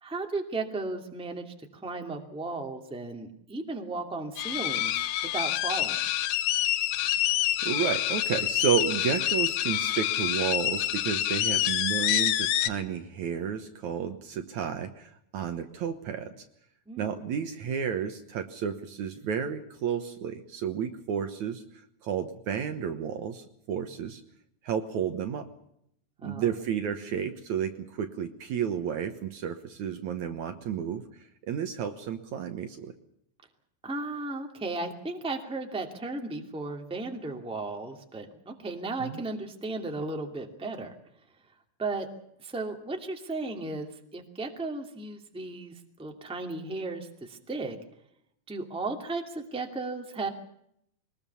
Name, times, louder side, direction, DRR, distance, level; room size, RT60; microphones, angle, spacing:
voice 1, 0.0-4.9 5.3-6.0 16.9-17.1 26.2-26.5 33.8-40.9 41.8-42.1 42.4-47.8 48.5-50.3, right 3 dB, ahead, 3 dB, 1.8 m, -35 dB
sound 1, 4.4-12.7, left 13 dB, 85° left, 2.8 m, -27 dB
voice 2, 7.6-16.3 17.0-21.6 22.0-24.2 24.6-25.5 26.2-31.1 31.5-32.9 39.0-39.2, right 8 dB, 65° right, 7 dB, 2.3 m, -32 dB
23.0 x 20.5 x 7.0 m, 0.74 s
omnidirectional pair, 4.1 m